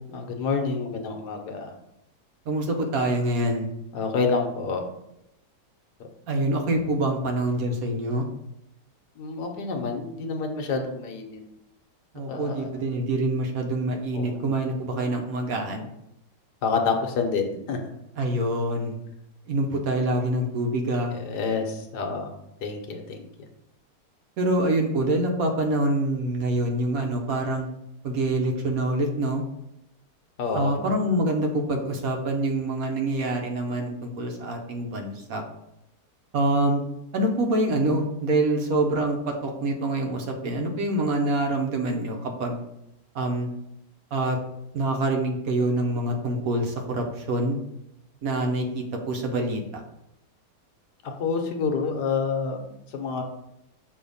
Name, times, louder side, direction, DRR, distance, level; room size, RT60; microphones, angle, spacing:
voice 1, 0.1-1.8 3.9-4.8 9.2-11.4 12.3-12.7 14.1-14.4 16.6-17.8 21.1-22.3 22.6-23.3 30.4-30.8 51.0-53.2, left 4 dB, 75° left, 3 dB, 1.4 m, -28 dB
voice 2, 2.5-3.7 6.3-8.2 12.1-15.9 18.2-19.0 19.5-21.1 24.4-27.7 28.0-29.4 30.5-35.4 36.3-36.8 37.1-42.6 43.1-43.5 44.1-44.4 44.7-47.6 48.2-49.8, right 1 dB, 65° right, 3 dB, 1.1 m, -25 dB
6.4 x 2.8 x 5.3 m, 0.83 s
omnidirectional pair, 1.8 m